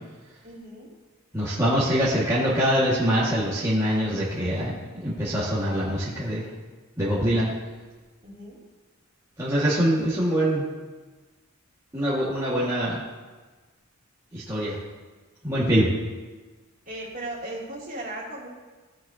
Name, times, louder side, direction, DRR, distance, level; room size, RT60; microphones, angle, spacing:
voice 1, 0.4-0.9 7.2-7.5 8.2-8.6 16.9-18.5, right 1 dB, 35° right, -5 dB, 2.8 m, -37 dB
voice 2, 1.3-4.7 5.0-6.4 7.0-7.5 9.4-10.6 11.9-13.0 14.3-14.8 15.4-15.9, equal, 15° right, -10 dB, 1.8 m, -24 dB
17.0 x 7.6 x 2.8 m, 1.3 s
head